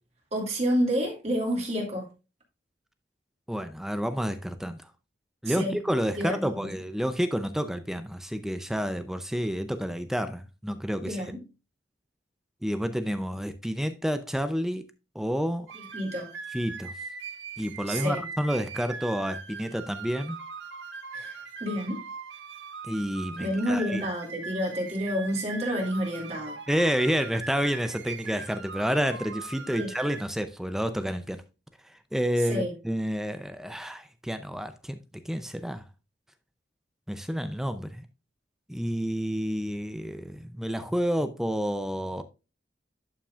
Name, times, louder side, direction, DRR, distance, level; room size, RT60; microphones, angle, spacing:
voice 1, 0.3-2.1 5.5-5.8 6.2-6.7 11.0-11.4 15.9-16.3 17.9-18.2 21.1-22.0 23.4-26.5 29.7-29.9 32.5-32.7, equal, 35° right, 2.6 m, -29 dB
voice 2, 3.5-4.9 5.4-11.2 12.6-14.9 15.1-15.7 16.5-16.9 17.6-20.4 22.9-24.0 26.7-31.4 31.9-35.0 35.2-35.8 37.1-38.1 38.7-42.2, equal, ahead, 0.5 m, -29 dB
sound 1, 15.7-30.3, right 5 dB, 85° right, 1.3 m, -41 dB
11.5 x 5.9 x 2.4 m
head